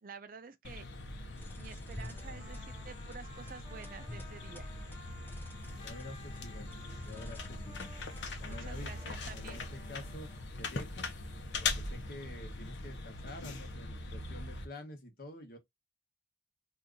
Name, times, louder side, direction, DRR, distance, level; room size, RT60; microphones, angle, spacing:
voice 1, 0.0-0.9 1.6-4.7 8.5-9.6, right 5 dB, 50° right, 0.5 m, -50 dB
sound 1, 0.6-14.7, left 3 dB, 90° left, 0.7 m, -41 dB
sound 2, 1.4-9.8, left 1 dB, 10° left, 0.5 m, -52 dB
Trumpet, 2.0-10.4, left 1 dB, 30° left, 1.2 m, -56 dB
voice 2, 5.8-6.8 7.0-7.7 8.4-8.9 9.3-10.3 10.6-11.1 11.6-15.6, left 1 dB, 55° left, 1.0 m, -48 dB
2.8 x 2.4 x 3.6 m
head